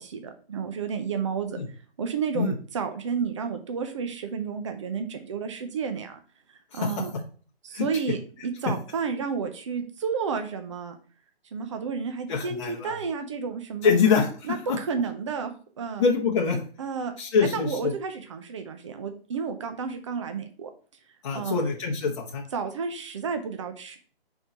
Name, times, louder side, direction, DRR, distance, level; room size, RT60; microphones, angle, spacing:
voice 1, 0.0-1.6 2.0-6.2 6.7-7.1 7.6-10.9 11.5-14.0 14.5-16.0 16.8-17.1 17.4-20.7 21.3-21.6 22.5-24.0, right 6 dB, 30° right, 6 dB, 0.8 m, -31 dB
voice 2, 6.7-7.0 7.7-7.9 12.3-12.9 13.8-14.3 14.7-14.8 16.0-16.6 17.2-17.9 21.2-22.4, left 5 dB, 30° left, -1 dB, 0.9 m, -24 dB
4.7 x 4.3 x 5.0 m, 0.41 s
figure-of-eight pair, 155°, 32 cm